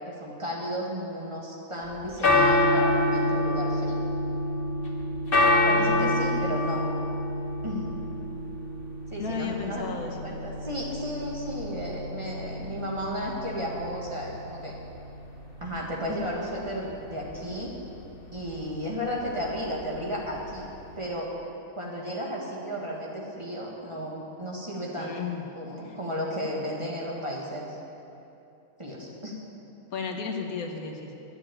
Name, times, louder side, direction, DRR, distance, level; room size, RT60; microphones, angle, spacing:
voice 1, 0.1-4.0 5.6-6.9 7.6-7.9 9.1-9.9 10.2-14.7 15.6-17.7 18.3-20.7 21.0-21.3 21.8-25.3 25.6-27.7 28.8-29.4, equal, 20° right, -4 dB, 1.7 m, -33 dB
sound 1, 1.9-20.9, left 1 dB, 40° left, 1.4 m, -28 dB
voice 2, 5.6-6.4 9.2-10.3 25.0-25.4 25.8-26.0 29.9-31.1, left 5 dB, 80° left, 3 dB, 1.5 m, -34 dB
11.5 x 6.9 x 8.8 m, 2.9 s
omnidirectional pair, 1.5 m